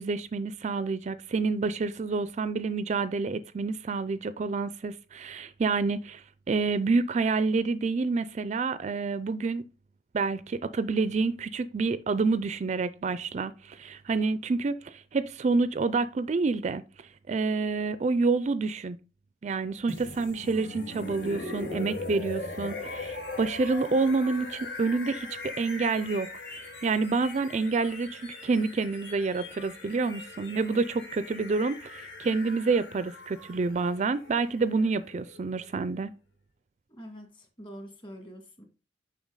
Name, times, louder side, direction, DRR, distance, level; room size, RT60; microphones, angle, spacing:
voice 1, 0.0-9.6 10.1-16.8 17.3-19.0 19.4-36.1, right 4 dB, 40° right, 0.4 m, -28 dB
sound 1, 19.9-35.8, left 2 dB, 85° left, 2.0 m, -40 dB
voice 2, 36.9-38.7, equal, 30° left, 2.0 m, -45 dB
7.1 x 5.7 x 3.7 m
head